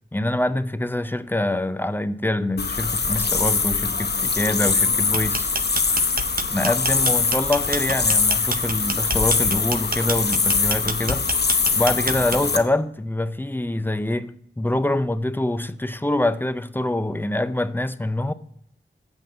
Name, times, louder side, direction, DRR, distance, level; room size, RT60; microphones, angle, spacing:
voice 1, 0.1-5.5 6.5-11.3 11.8-18.3, left 1 dB, 10° left, 0.5 m, -25 dB
sound 1, 2.6-12.6, left 4 dB, 60° left, 0.8 m, -22 dB
sound 2, 5.0-12.7, right 4 dB, 50° right, 0.6 m, -29 dB
7.7 x 5.4 x 6.3 m
wide cardioid pair, 60°, 20 cm